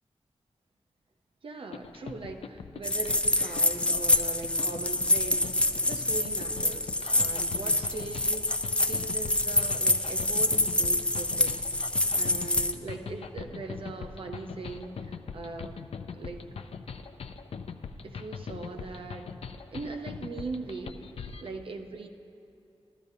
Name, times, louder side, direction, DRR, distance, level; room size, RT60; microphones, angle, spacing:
voice 1, 1.4-11.6 12.1-15.9 16.1-16.7 18.0-19.3 19.7-21.1 21.4-22.1, right 3 dB, 60° right, 5 dB, 0.7 m, -40 dB
sound 1, 1.7-21.5, left 5 dB, 70° left, 0.4 m, -41 dB
sound 2, 2.8-12.7, left 1 dB, 10° left, 0.3 m, -26 dB
14.0 x 13.5 x 2.7 m, 2.8 s
wide cardioid pair, 145°, 10 cm